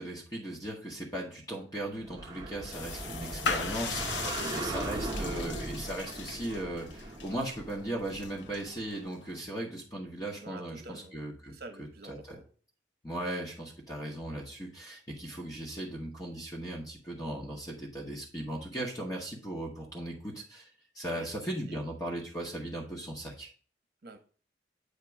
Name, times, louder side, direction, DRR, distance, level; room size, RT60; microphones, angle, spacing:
voice 1, 0.0-4.2 4.6-12.4 13.0-20.7 20.9-23.5, right 1 dB, 20° left, -3 dB, 1.0 m, -38 dB
sound 1, 2.0-8.6, right 2 dB, 25° right, 0.9 m, -38 dB
sound 2, 2.7-9.4, left 5 dB, 75° left, 0.6 m, -39 dB
voice 2, 4.0-4.7 10.4-11.2 11.5-12.4 21.1-21.3 21.7-21.8 24.0-24.2, right 2 dB, 60° right, 6 dB, 0.9 m, -47 dB
8.2 x 2.9 x 4.5 m, 0.41 s
head